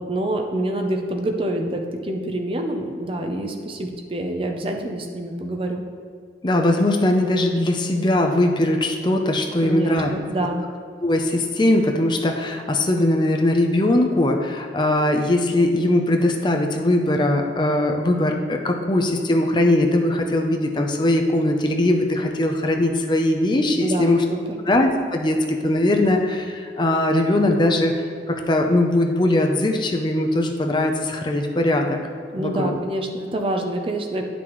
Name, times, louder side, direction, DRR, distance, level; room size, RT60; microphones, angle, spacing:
voice 1, 0.0-5.8 9.6-10.7 23.8-24.6 32.3-34.3, right 1 dB, 30° right, 3 dB, 0.6 m, -26 dB
voice 2, 6.4-10.1 11.0-24.2 24.7-32.0 32.4-32.8, left 1 dB, 25° left, 3 dB, 0.5 m, -20 dB
9.9 x 6.0 x 3.1 m, 2.1 s
head